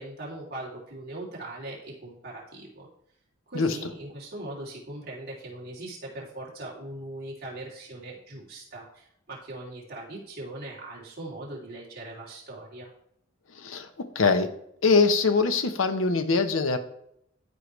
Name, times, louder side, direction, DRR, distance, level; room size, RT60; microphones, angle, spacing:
voice 1, 0.0-2.9 3.5-12.9, right 2 dB, 50° right, -5 dB, 2.8 m, -40 dB
voice 2, 13.5-14.5 14.8-16.8, left 4 dB, 85° left, 9 dB, 0.8 m, -23 dB
13.0 x 4.8 x 3.2 m, 0.72 s
head